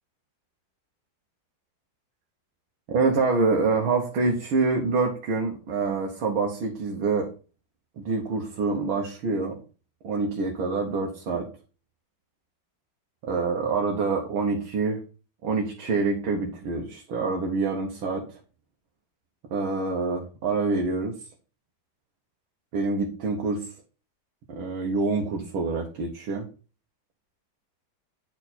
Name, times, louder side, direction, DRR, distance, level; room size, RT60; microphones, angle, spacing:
voice 1, 2.9-7.3 8.0-9.6 10.0-11.5 13.2-15.0 15.4-18.3 19.5-21.1 22.7-23.7 24.5-26.5, right 4 dB, 85° right, 1 dB, 2.0 m, -26 dB
9.5 x 4.5 x 4.3 m, 0.35 s
omnidirectional pair, 2.2 m